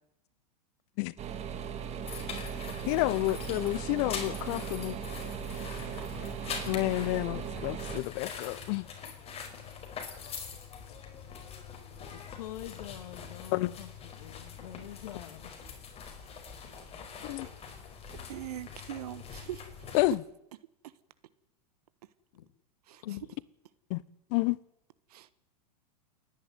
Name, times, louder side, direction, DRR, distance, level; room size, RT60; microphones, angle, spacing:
sound 1, 1.2-8.0, right 8 dB, 30° right, 2.5 m, -38 dB
sound 2, 2.0-20.1, left 6 dB, 30° left, 4.9 m, -44 dB
voice 1, 2.9-4.9 6.7-8.9 13.5-13.7 17.2-17.5 19.9-20.2 23.9-24.0 24.3-24.6, left 21 dB, 50° left, 0.8 m, -29 dB
voice 2, 12.1-13.9 14.2-15.5 22.3-22.5 23.0-23.3, left 13 dB, 70° left, 2.0 m, -44 dB
voice 3, 18.2-19.6 22.9-23.0 25.1-25.3, right 13 dB, 70° right, 1.4 m, -41 dB
29.0 x 10.5 x 9.5 m
hypercardioid pair, 100°, 21 cm